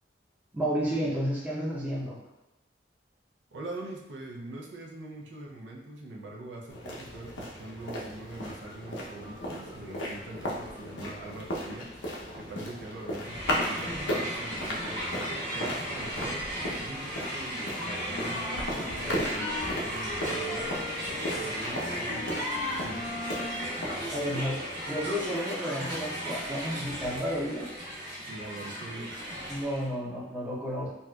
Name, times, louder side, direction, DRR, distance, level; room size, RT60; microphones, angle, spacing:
voice 1, 0.5-2.2 24.1-27.7 29.5-30.9, equal, 10° right, -6 dB, 0.6 m, -31 dB
voice 2, 3.5-12.0 12.4-16.5 16.8-20.8 21.1-23.2 28.2-29.2, right 2 dB, 70° right, -1 dB, 0.5 m, -43 dB
sound 1, 6.7-25.3, equal, 85° left, 0.7 m, -37 dB
Crowd, 13.2-29.9, equal, 50° right, 1.4 m, -35 dB
sound 2, 18.1-23.8, left 1 dB, 45° left, 0.3 m, -40 dB
4.0 x 2.3 x 2.2 m, 0.97 s
head